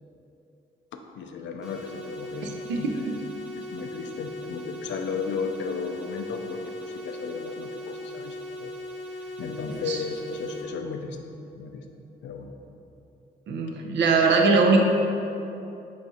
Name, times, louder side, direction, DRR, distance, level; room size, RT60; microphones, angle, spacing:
voice 1, 0.9-3.1 3.5-8.7 9.2-11.2 11.6-11.8 12.2-12.5, left 5 dB, 85° left, 4 dB, 0.4 m, -35 dB
sound 1, 1.6-10.6, left 1 dB, 5° right, 0.6 m, -38 dB
voice 2, 2.4-2.8 9.9-10.0 13.5-14.8, right 4 dB, 90° right, 2 dB, 0.5 m, -21 dB
5.1 x 2.4 x 4.0 m, 2.7 s
wide cardioid pair, 140°, 18 cm